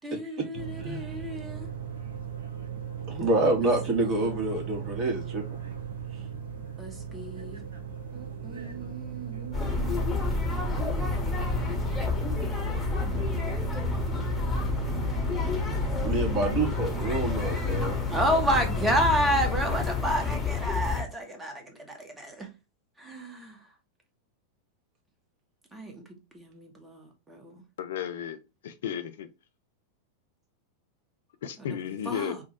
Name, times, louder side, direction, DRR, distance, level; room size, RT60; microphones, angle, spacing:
voice 1, 0.0-1.7 6.8-7.6 8.1-10.2 13.0-13.2 18.1-22.5 23.0-23.6 25.7-26.0 26.3-27.6 32.0-32.4, right 1 dB, 10° right, 1.3 m, -31 dB
sound 1, 0.5-19.2, right 8 dB, 65° right, 0.9 m, -37 dB
voice 2, 3.1-5.6 16.0-18.0, right 2 dB, 35° right, 1.5 m, -27 dB
sound 2, 9.5-21.0, left 4 dB, 15° left, 1.3 m, -29 dB
voice 3, 27.8-28.4 28.6-29.3 31.4-32.4, left 9 dB, 60° left, 0.5 m, -33 dB
3.8 x 2.4 x 4.0 m
figure-of-eight pair, 90°, 0 cm